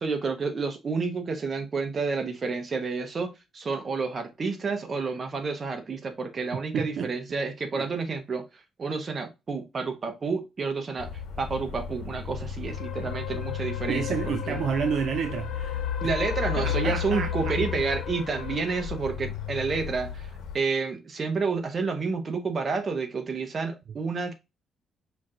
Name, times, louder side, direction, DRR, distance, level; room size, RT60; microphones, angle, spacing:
voice 1, 0.0-14.6 16.0-20.3 20.5-24.3, right 4 dB, 40° right, 0.9 m, -30 dB
voice 2, 6.7-7.1 7.7-7.9 13.9-16.1 16.6-17.6, right 7 dB, 65° right, 0.3 m, -30 dB
sound 1, 11.0-20.6, left 8 dB, 80° left, 1.2 m, -33 dB
5.0 x 2.5 x 2.7 m
cardioid pair, 90°, 0 cm